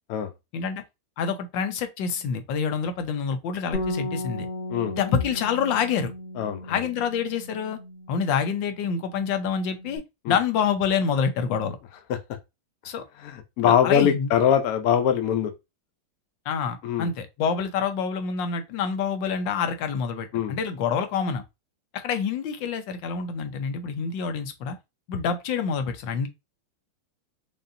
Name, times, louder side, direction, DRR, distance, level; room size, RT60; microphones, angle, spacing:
voice 1, 1.2-4.5 4.9-6.1 6.7-7.8 8.1-10.0 10.3-11.8 12.8-13.0 13.6-14.3 16.5-21.4 21.9-24.8 25.1-26.3, left 6 dB, 70° left, 1.3 m, -27 dB
Bass guitar, 3.7-8.4 8.7-10.0, left 1 dB, 35° left, 1.2 m, -36 dB
voice 2, 6.4-6.7 10.2-10.4 13.2-15.5 16.8-17.1 20.3-20.6, left 9 dB, 85° left, 0.7 m, -22 dB
5.2 x 2.6 x 2.6 m
omnidirectional pair, 2.3 m